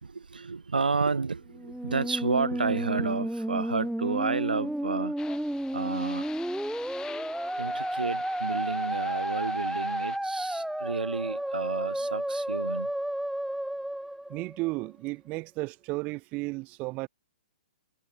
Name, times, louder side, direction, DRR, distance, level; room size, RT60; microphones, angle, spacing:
voice 1, 0.0-5.1 5.7-6.3 7.5-12.9, right 4 dB, 75° right, 5.0 m, -31 dB
Musical instrument, 1.5-14.9, right 1 dB, ahead, 7.1 m, -32 dB
sound 1, 5.2-10.2, left 7 dB, 15° left, 6.6 m, -46 dB
voice 2, 14.3-17.1, right 23 dB, 30° right, 4.1 m, -33 dB
figure-of-eight pair, 120°, 5 cm